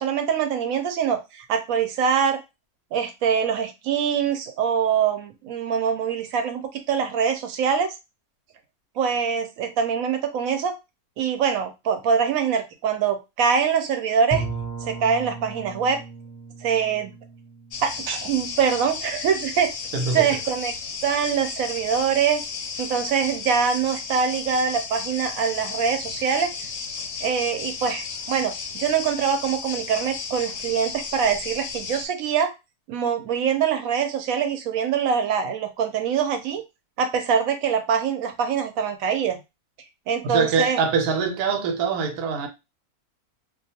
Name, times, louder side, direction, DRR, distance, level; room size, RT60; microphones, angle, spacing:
voice 1, 0.0-2.4 2.9-7.9 9.0-10.7 11.2-14.4 14.8-16.0 16.6-17.1 17.8-19.7 20.1-20.7 21.0-22.4 22.8-26.5 27.2-32.5 32.9-36.6 37.0-39.4 40.1-40.8, right 7 dB, 70° right, 0.9 m, -24 dB
Bowed string instrument, 14.3-19.1, right 3 dB, 25° left, 0.5 m, -36 dB
sound 1, 17.7-32.1, left 5 dB, 65° left, 0.8 m, -34 dB
voice 2, 19.9-20.3 40.2-42.5, right 5 dB, 90° right, 1.1 m, -23 dB
2.3 x 2.3 x 2.7 m
omnidirectional pair, 1.6 m